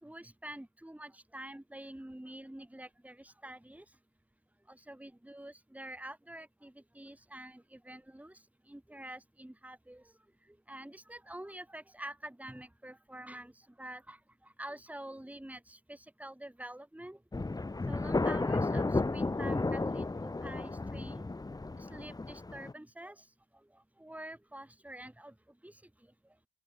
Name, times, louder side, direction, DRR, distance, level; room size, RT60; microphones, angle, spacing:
voice 1, 0.0-3.8 4.7-8.4 8.7-10.0 10.7-13.5 13.8-14.2 14.6-17.2 17.8-21.3 21.8-23.2 24.0-25.3 25.6-25.7, right 1 dB, 5° right, 4.5 m, -47 dB
sound 1, 17.3-22.7, left 3 dB, 10° left, 0.8 m, -33 dB
open air
cardioid pair, 90°, 30 cm